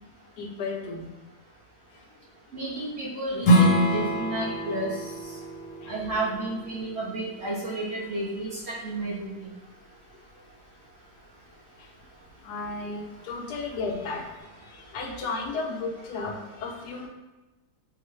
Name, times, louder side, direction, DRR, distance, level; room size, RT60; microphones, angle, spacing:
voice 1, 0.4-1.1 2.7-2.8 5.8-5.9 11.8-11.9 12.4-14.2 14.7-17.1, left 3 dB, 85° left, 1 dB, 1.2 m, -34 dB
voice 2, 2.5-4.9 5.9-9.5, right 2 dB, 45° right, -8 dB, 1.4 m, -31 dB
Strum, 3.4-8.6, equal, 60° left, 1.1 m, -26 dB
4.6 x 2.4 x 3.1 m, 1.1 s
omnidirectional pair, 1.7 m